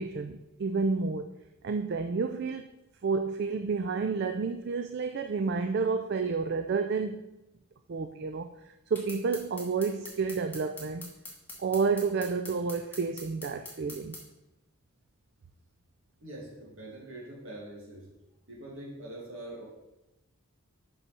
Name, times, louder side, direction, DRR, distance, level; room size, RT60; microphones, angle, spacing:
voice 1, 0.0-1.3 1.6-2.7 3.0-7.2 7.9-11.1 11.6-14.2, right 4 dB, 50° right, 7 dB, 0.3 m, -30 dB
sound 1, 8.9-14.2, left 2 dB, 10° left, 1.5 m, -44 dB
voice 2, 16.2-18.1 18.5-19.7, right 1 dB, 65° right, -3 dB, 2.5 m, -43 dB
5.5 x 5.5 x 6.0 m, 0.98 s
head